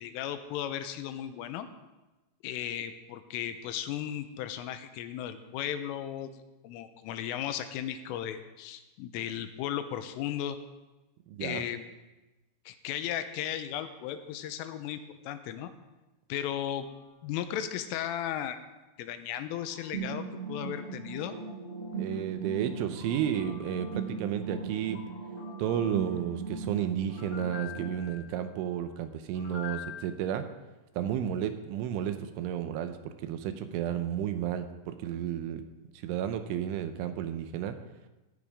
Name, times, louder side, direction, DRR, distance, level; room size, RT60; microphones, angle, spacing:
voice 1, 0.0-1.7 2.4-6.3 6.6-10.6 11.4-11.9 12.7-15.7 16.3-16.9 17.2-18.6 19.0-21.4, left 10 dB, 85° left, 9 dB, 3.4 m, -35 dB
voice 2, 11.3-11.6 22.0-25.0 25.6-30.5 31.0-35.6 36.0-37.8, right 10 dB, 80° right, 9 dB, 3.1 m, -32 dB
sound 1, 16.8-17.1 18.0-18.4 19.7-20.1 22.9-24.2 24.8-26.3 27.1-28.5 29.3-30.0, left 9 dB, 50° left, 3.0 m, -47 dB
sound 2, 19.9-27.9, right 4 dB, 55° right, 4.8 m, -38 dB
17.5 x 15.0 x 3.6 m, 1.1 s
omnidirectional pair, 5.8 m